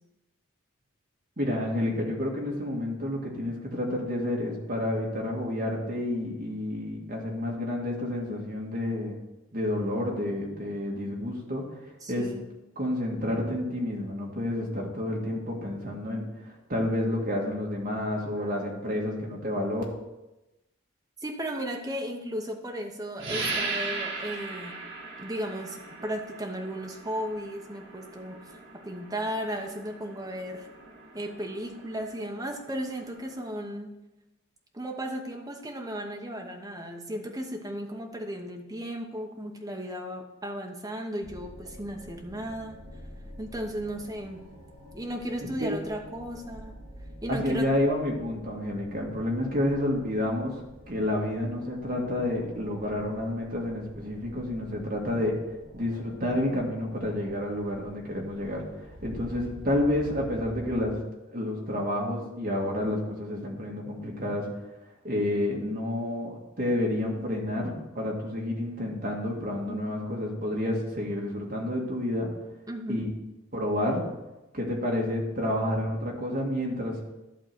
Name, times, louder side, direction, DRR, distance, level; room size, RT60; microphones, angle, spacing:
voice 1, 1.4-9.2 9.5-11.8 12.1-12.3 12.8-19.8 45.6-45.7 47.3-50.5 50.9-55.3 55.7-58.6 59.0-64.5 65.0-72.3 72.9-73.0 73.5-74.0 74.5-77.1, left 1 dB, 45° right, -1 dB, 1.8 m, -29 dB
voice 2, 12.0-12.4 21.2-24.8 25.2-30.7 31.1-33.9 34.7-42.8 43.4-44.4 44.9-46.7 47.2-47.7 69.7-70.0 72.7-73.1, equal, 15° right, 2 dB, 0.9 m, -35 dB
sound 1, 23.2-33.5, right 3 dB, 60° right, 2.1 m, -39 dB
sound 2, 41.2-61.0, equal, 80° right, 2.8 m, -48 dB
11.5 x 3.8 x 7.5 m, 1.0 s
head